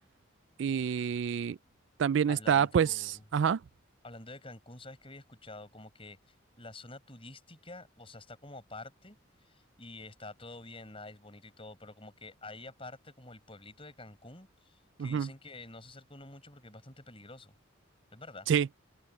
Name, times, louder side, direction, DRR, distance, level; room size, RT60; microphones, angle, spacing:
voice 1, 0.6-1.6 2.0-3.6 15.0-15.3 18.5-18.7, right 7 dB, 60° right, 0.3 m, -27 dB
voice 2, 2.3-3.2 4.0-6.2 6.6-9.2 9.4-17.5 18.1-18.5, left 2 dB, 25° left, 5.8 m, -48 dB
head